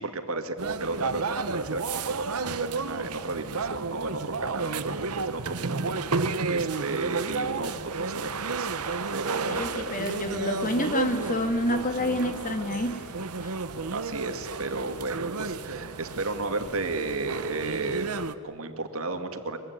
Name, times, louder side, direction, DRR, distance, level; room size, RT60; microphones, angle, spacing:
voice 1, 0.0-10.0 13.9-19.6, right 3 dB, 65° right, 7 dB, 2.3 m, -33 dB
sound 1, 0.6-18.3, right 4 dB, 85° right, 1.1 m, -32 dB
Crowd / Fireworks, 8.6-16.9, right 1 dB, 20° right, 7.5 m, -48 dB
voice 2, 9.5-13.0, left 1 dB, 35° left, 7 dB, 2.1 m, -28 dB
23.5 x 23.5 x 9.6 m, 2.4 s
head